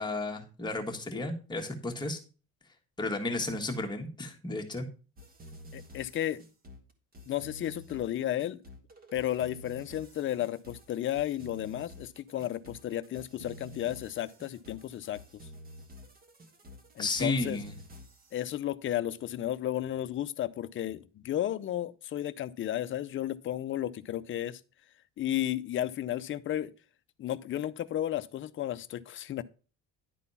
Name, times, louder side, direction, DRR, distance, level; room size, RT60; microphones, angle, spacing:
voice 1, 0.0-2.2 3.0-4.9 17.0-17.7, left 2 dB, 15° left, 1.5 m, -33 dB
sound 1, 5.2-18.4, left 1 dB, 30° right, 1.4 m, -50 dB
voice 2, 5.7-6.4 7.3-8.6 9.1-15.2 17.0-17.6 18.3-24.6 25.2-26.7 27.2-29.4, left 12 dB, 40° left, 0.6 m, -33 dB
11.0 x 4.1 x 5.5 m
cardioid pair, 145°, 31 cm